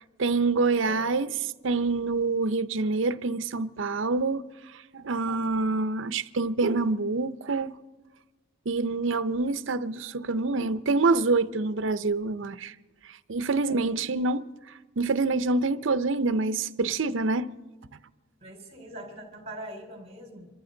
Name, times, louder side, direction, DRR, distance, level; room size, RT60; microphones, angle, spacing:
voice 1, 0.2-4.4 4.9-7.7 8.7-12.7 13.3-14.5 15.0-17.5, right 3 dB, 70° right, 0.6 m, -26 dB
voice 2, 13.5-14.0 18.4-20.5, right 1 dB, 30° right, 3.8 m, -43 dB
26.5 x 14.0 x 3.9 m
head